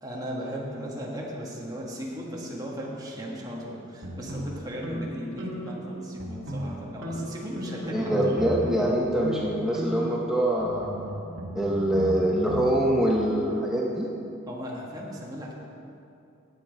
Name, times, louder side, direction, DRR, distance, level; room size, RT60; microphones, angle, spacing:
voice 1, 0.0-8.4 14.5-15.5, equal, 20° right, -3 dB, 1.5 m, -36 dB
sound 1, 4.0-5.9 6.1-6.8 7.0-8.9 9.2-9.4 9.7-12.7, equal, 65° right, 1.5 m, -35 dB
voice 2, 7.9-14.1, right 1 dB, 5° right, -4 dB, 0.8 m, -25 dB
11.0 x 7.8 x 5.2 m, 2.7 s
head